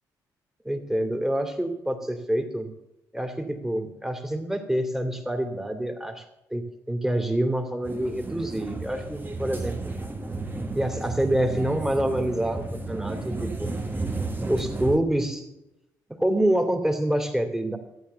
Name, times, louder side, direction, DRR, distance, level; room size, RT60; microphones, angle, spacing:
voice 1, 0.6-2.7 3.1-6.2 6.5-10.0 10.6-13.7 14.5-15.5 16.2-17.8, right 1 dB, 5° right, 5 dB, 2.6 m, -27 dB
sound 1, 7.8-15.0, right 3 dB, 20° right, 1.7 m, -33 dB
13.5 x 8.8 x 6.9 m, 0.89 s
hypercardioid pair, 45°, 9 cm